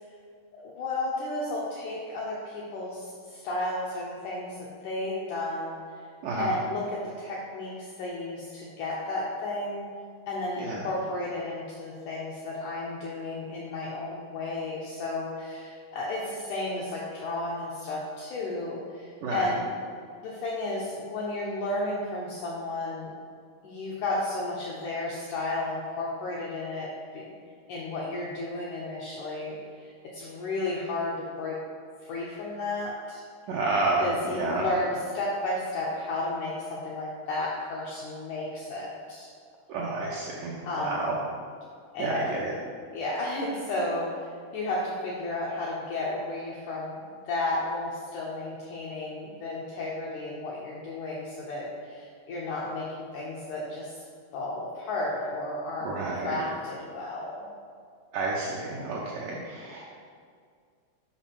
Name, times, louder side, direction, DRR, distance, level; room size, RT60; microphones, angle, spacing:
voice 1, 0.6-4.6 4.8-5.8 6.4-9.9 10.3-19.7 20.2-23.1 23.6-27.3 27.7-31.6 32.0-33.2 34.0-39.3 40.6-41.1 41.9-42.2 42.9-54.0 54.3-57.5, left 2 dB, 75° left, -4 dB, 1.8 m, -33 dB
voice 2, 6.2-6.5 10.6-10.8 19.2-19.5 33.5-34.7 39.7-41.2 42.0-42.5 55.8-56.4 58.1-60.0, right 3 dB, 75° right, -4 dB, 2.0 m, -30 dB
7.1 x 5.2 x 5.7 m, 2.1 s
omnidirectional pair, 4.6 m